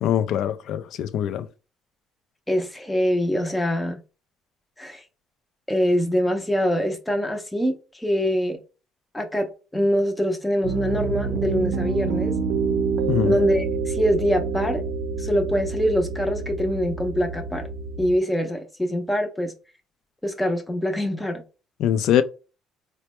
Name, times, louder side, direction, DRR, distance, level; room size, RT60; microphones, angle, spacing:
voice 1, 0.0-1.5 13.1-13.4 21.8-22.2, left 10 dB, 65° left, 0.3 m, -22 dB
voice 2, 2.5-4.0 4.8-5.0 5.7-8.6 9.1-12.3 13.2-14.8 15.2-17.6 18.0-19.5 20.2-21.4, equal, 5° left, 0.5 m, -24 dB
Piano, 10.6-18.1, right 5 dB, 65° right, 0.5 m, -27 dB
4.2 x 2.1 x 2.9 m
cardioid pair, 160°, 0 cm